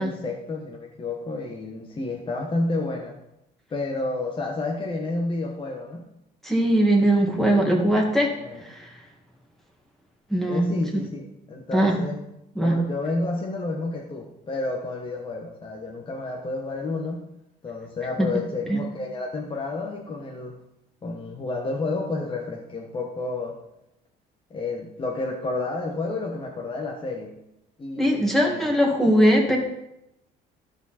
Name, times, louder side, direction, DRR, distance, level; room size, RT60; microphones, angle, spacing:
voice 1, 0.0-3.2 3.7-6.0 8.4-8.6 10.5-12.2 12.6-17.2 17.6-20.6 21.0-23.6 24.5-27.3 27.8-28.7, left 2 dB, 30° left, -1 dB, 1.3 m, -30 dB
voice 2, 6.4-8.3 8.6-8.9 10.3-10.7 10.9-11.0 11.7-12.0 12.6-12.8 18.2-18.3 18.7-18.8 28.0-29.6, right 1 dB, ahead, -1 dB, 2.1 m, -20 dB
13.5 x 5.0 x 4.2 m, 0.85 s
cardioid pair, 110°, 17 cm